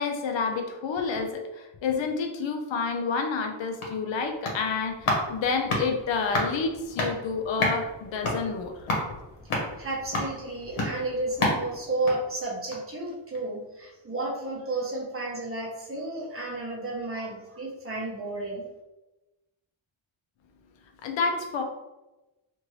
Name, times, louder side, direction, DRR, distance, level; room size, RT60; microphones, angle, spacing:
voice 1, 0.0-8.9 21.0-21.6, left 5 dB, 65° left, 4 dB, 0.6 m, -29 dB
sound 1, 3.4-13.0 13.3-13.4, left 2 dB, 85° left, 1.0 m, -32 dB
voice 2, 9.8-18.6, right 2 dB, 25° right, -3 dB, 0.9 m, -32 dB
2.6 x 2.6 x 3.0 m, 1.0 s
wide cardioid pair, 115°, 49 cm